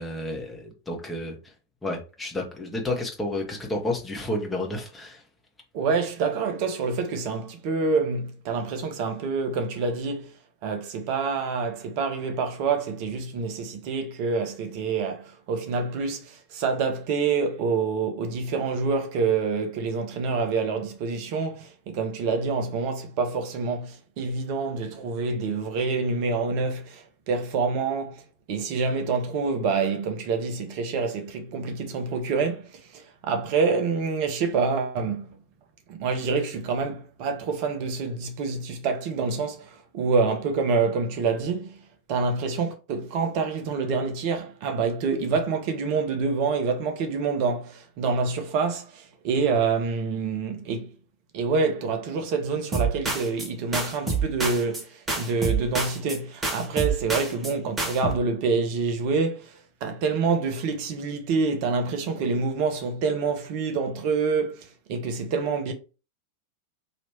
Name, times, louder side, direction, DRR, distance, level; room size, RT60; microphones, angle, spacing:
voice 1, 0.0-1.4 1.8-5.2, left 1 dB, 10° left, 1.3 m, -31 dB
voice 2, 5.7-10.3 10.6-28.2 28.5-35.3 35.9-41.8 42.1-50.9 51.3-65.7, right 4 dB, 45° right, 0.8 m, -27 dB
sound 1, 52.7-53.5 53.7-54.8 55.1-56.2 56.4-57.5 57.8-58.1, right 4 dB, 15° right, 1.2 m, -27 dB
3.1 x 3.0 x 4.3 m
figure-of-eight pair, 90°, 0 cm